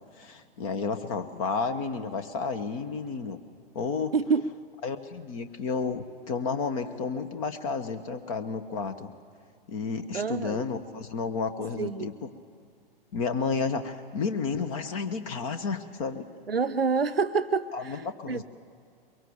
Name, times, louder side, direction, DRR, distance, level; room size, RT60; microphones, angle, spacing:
voice 1, 0.2-3.4 3.7-4.1 4.8-9.1 9.7-12.3 13.1-16.3 17.7-18.4, left 5 dB, 35° left, 11 dB, 1.2 m, -31 dB
voice 2, 4.1-4.5 10.1-10.6 11.8-12.1 16.5-18.4, right 5 dB, 85° right, 12 dB, 0.7 m, -27 dB
23.0 x 23.0 x 7.1 m, 2.3 s
figure-of-eight pair, 110°, 29 cm